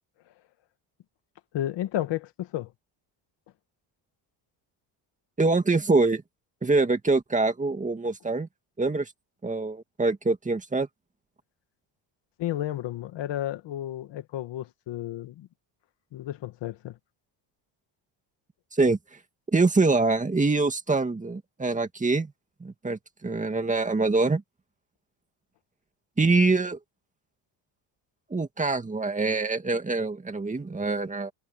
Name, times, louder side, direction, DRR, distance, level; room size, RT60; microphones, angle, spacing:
voice 1, 1.5-2.7 12.4-15.5 16.1-17.0, left 13 dB, 65° left, 2.0 m, -32 dB
voice 2, 5.4-6.2 6.6-8.5 8.8-9.1 9.4-10.9 18.7-19.0 19.5-22.3 22.6-24.4 26.2-26.8 28.3-31.3, right 3 dB, 15° right, 2.2 m, -24 dB
cardioid pair, 125°, 46 cm